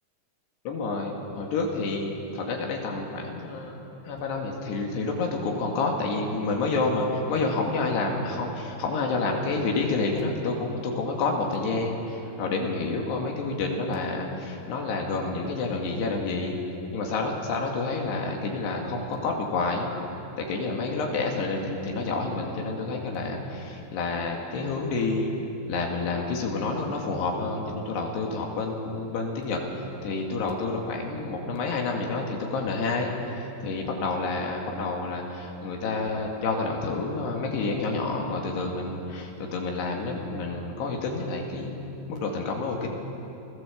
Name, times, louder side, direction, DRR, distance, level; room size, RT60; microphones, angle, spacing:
voice 1, 0.7-3.8 4.0-16.6 16.9-19.9 20.4-25.3 25.7-41.8 42.1-42.9, left 3 dB, 80° left, 0 dB, 4.2 m, -29 dB
29.0 x 16.5 x 7.4 m, 3.0 s
omnidirectional pair, 4.8 m